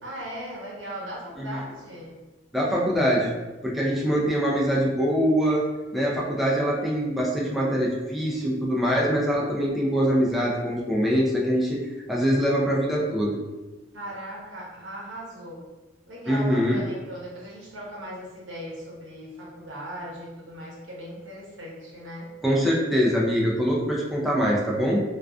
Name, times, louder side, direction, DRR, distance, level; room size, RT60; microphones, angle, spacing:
voice 1, 0.0-2.2 13.9-15.6 16.1-22.3, equal, 80° right, -4 dB, 0.8 m, -38 dB
voice 2, 2.5-3.3 3.6-5.7 5.9-13.3 16.3-16.8 22.4-25.0, equal, ahead, -4 dB, 0.3 m, -23 dB
2.4 x 2.3 x 2.3 m, 1.2 s
head